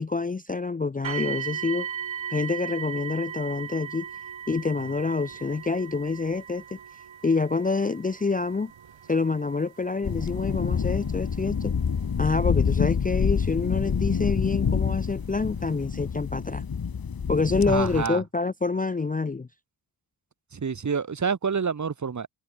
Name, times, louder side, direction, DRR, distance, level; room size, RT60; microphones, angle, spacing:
voice 1, 0.0-1.9 2.3-4.1 4.5-6.8 7.2-8.7 9.1-11.7 12.2-16.6 17.3-19.5, left 4 dB, 20° left, 0.5 m, -27 dB
sound 1, 1.0-13.9 14.8-14.9 15.4-15.5, right 8 dB, 75° right, 2.2 m, -38 dB
sound 2, 10.0-18.1, left 6 dB, 50° left, 1.7 m, -27 dB
voice 2, 17.7-18.2 20.5-22.3, right 6 dB, 40° right, 1.1 m, -28 dB
wide cardioid pair, 130°, 46 cm